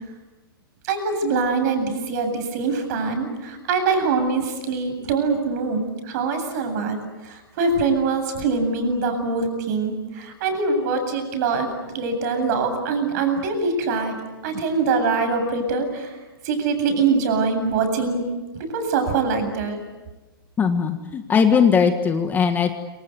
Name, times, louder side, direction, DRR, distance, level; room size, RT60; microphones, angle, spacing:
voice 1, 0.8-11.7 11.9-14.2 14.4-16.2 16.4-18.2 18.5-19.8, right 4 dB, 45° right, 7 dB, 8.0 m, -23 dB
voice 2, 20.6-22.7, left 6 dB, 15° left, 7 dB, 1.6 m, -19 dB
27.5 x 26.0 x 8.3 m, 1.2 s
hypercardioid pair, 150°, 13 cm